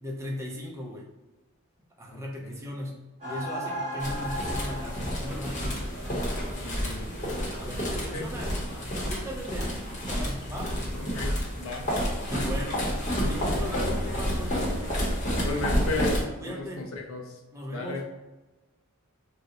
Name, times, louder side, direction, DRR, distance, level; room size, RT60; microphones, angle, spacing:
voice 1, 0.0-1.1 2.0-6.3 7.6-10.8 12.3-14.5 16.4-16.8 17.5-18.0, equal, 15° right, -2 dB, 0.4 m, -38 dB
voice 2, 2.1-2.6 6.6-7.3 8.1-8.3 11.1-11.9 15.4-17.4 17.7-18.1, left 2 dB, 65° left, 2 dB, 0.5 m, -34 dB
sound 1, 3.2-8.8, equal, 30° right, 1.1 m, -38 dB
sound 2, 4.0-16.2, equal, 30° left, 0.8 m, -30 dB
2.8 x 2.1 x 3.7 m, 1.1 s
head